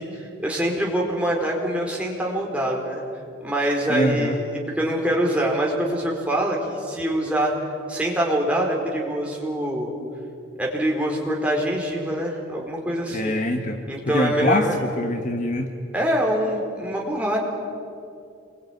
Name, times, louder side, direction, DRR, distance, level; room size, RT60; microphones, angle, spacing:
voice 1, 0.0-3.0 3.4-7.5 7.9-9.9 10.6-13.4 13.9-14.7 15.9-17.4, right 1 dB, 5° right, -2 dB, 4.4 m, -24 dB
voice 2, 3.9-4.4 13.1-13.8 14.1-15.7, left 1 dB, 40° left, 5 dB, 1.3 m, -24 dB
27.5 x 22.5 x 9.3 m, 2.5 s
head